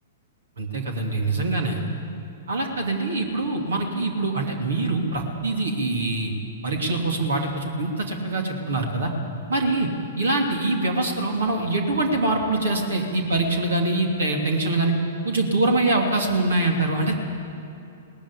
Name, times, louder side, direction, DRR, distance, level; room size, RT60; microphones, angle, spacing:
voice 1, 0.6-1.8 2.5-6.3 6.6-9.1 9.5-9.9 10.2-14.9 15.2-17.2, right 2 dB, 65° right, 2 dB, 2.8 m, -24 dB
18.5 x 15.5 x 9.9 m, 2.7 s
figure-of-eight pair, 105°, 0 cm